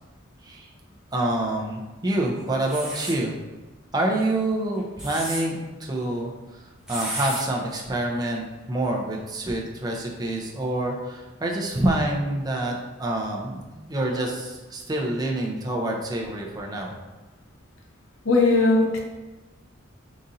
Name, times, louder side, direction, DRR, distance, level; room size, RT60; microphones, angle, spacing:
voice 1, 1.1-3.3 3.9-17.0, right 1 dB, 20° right, 0 dB, 0.5 m, -27 dB
sound 1, 2.6-3.2 4.8-5.4 6.9-7.4, right 1 dB, 5° right, 1.1 m, -32 dB
voice 2, 18.2-19.0, left 2 dB, 80° left, 0 dB, 0.8 m, -19 dB
4.1 x 2.6 x 3.8 m, 1.1 s
head